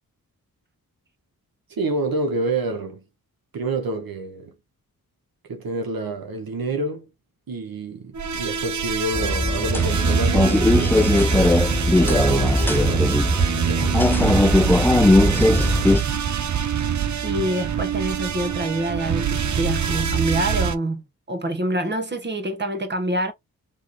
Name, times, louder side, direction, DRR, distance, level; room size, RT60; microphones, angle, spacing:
voice 1, 1.7-3.0 3.5-4.5 5.4-7.1 7.5-13.2 13.6-14.5, right 3 dB, 70° right, 1.4 m, -28 dB
sound 1, 8.1-20.7, right 8 dB, 50° right, 0.8 m, -24 dB
sound 2, 9.1-16.0, left 2 dB, 5° left, 0.3 m, -19 dB
voice 2, 17.2-21.0 21.3-23.3, right 1 dB, 30° right, 1.5 m, -26 dB
3.6 x 3.2 x 4.2 m
cardioid pair, 60°, 37 cm